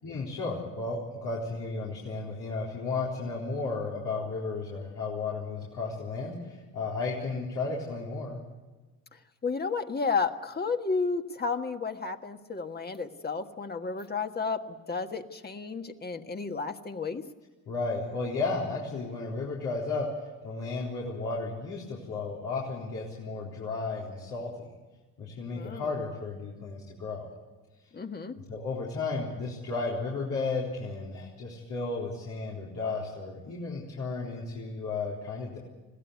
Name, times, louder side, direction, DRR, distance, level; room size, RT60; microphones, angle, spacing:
voice 1, 0.0-8.4 17.7-20.1 20.4-24.5 25.2-27.3 28.5-35.6, left 3 dB, 80° left, -6 dB, 4.1 m, -33 dB
voice 2, 9.4-17.3 25.5-26.0 27.9-28.4, left 4 dB, 30° left, 6 dB, 1.6 m, -32 dB
21.0 x 16.5 x 9.6 m, 1.2 s
cardioid pair, 90°, 30 cm